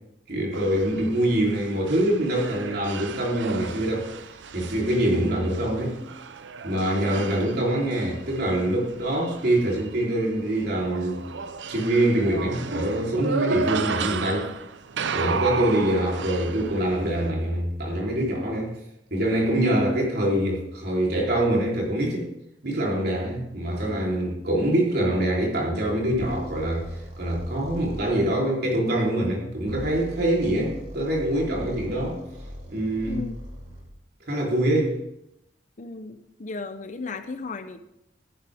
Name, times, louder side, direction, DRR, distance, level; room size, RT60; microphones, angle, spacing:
voice 1, 0.3-4.1 4.5-6.0 6.6-11.3 11.7-14.5 15.1-18.7 19.1-22.3 22.6-26.9 27.2-32.2 32.7-33.2 34.3-35.0, right 1 dB, 60° right, -2 dB, 3.5 m, -24 dB
sound 1, 0.5-17.3, right 5 dB, 85° right, 0.6 m, -34 dB
sound 2, 26.1-28.1 29.6-33.9, equal, 40° right, 2.5 m, -40 dB
voice 2, 35.8-37.8, left 3 dB, 45° left, 10 dB, 0.7 m, -35 dB
14.5 x 10.5 x 3.5 m, 0.81 s
head